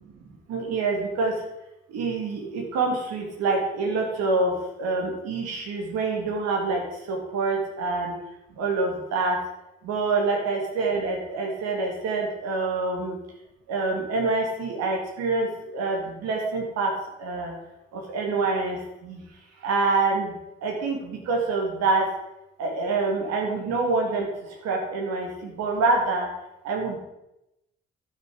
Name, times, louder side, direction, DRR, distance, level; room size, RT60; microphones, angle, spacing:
voice 1, 0.5-1.3 1.9-6.8 7.1-8.1 8.6-9.4 9.9-13.2 13.7-15.5 15.7-16.9 17.2-17.5 18.1-18.8 19.0-19.2 19.6-20.3 20.6-22.0 22.6-24.3 24.6-26.3 26.7-27.0, right 3 dB, 60° right, 1 dB, 2.2 m, -26 dB
11.5 x 6.4 x 5.0 m, 0.89 s
figure-of-eight pair, 40°, 29 cm